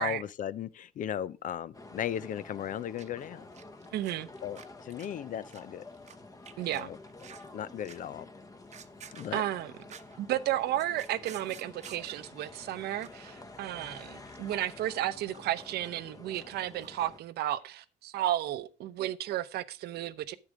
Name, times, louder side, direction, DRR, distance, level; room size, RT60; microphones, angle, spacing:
voice 1, 0.0-3.4 4.4-5.8 6.7-7.0 7.5-8.3 9.1-9.4, left 10 dB, 50° left, 0.5 m, -36 dB
sound 1, 1.7-17.2, left 2 dB, 20° left, 1.1 m, -50 dB
sound 2, 3.0-3.3 3.5-6.2 6.5-7.5 7.9-8.2 8.5-10.2 10.5-12.3 12.7-12.8 13.0-13.3 13.6-17.2 17.5-17.6, right 8 dB, 40° right, 0.9 m, -52 dB
voice 2, 3.9-4.3 6.6-6.9 9.3-9.7 10.2-20.4, right 13 dB, 70° right, 0.8 m, -33 dB
9.9 x 7.6 x 5.0 m
cardioid pair, 110°, 17 cm